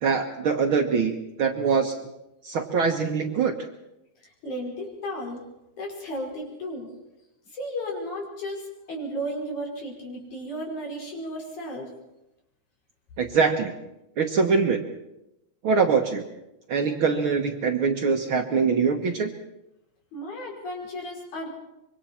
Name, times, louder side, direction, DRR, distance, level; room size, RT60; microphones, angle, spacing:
voice 1, 0.0-2.0 2.4-3.6 13.2-13.7 14.2-14.9 15.6-16.2 16.7-19.3, right 5 dB, 55° right, 3 dB, 1.7 m, -23 dB
voice 2, 4.2-5.4 5.8-6.9 7.5-11.9 20.1-21.5, equal, 75° left, -1 dB, 6.5 m, -34 dB
25.5 x 24.0 x 4.4 m, 0.89 s
omnidirectional pair, 3.4 m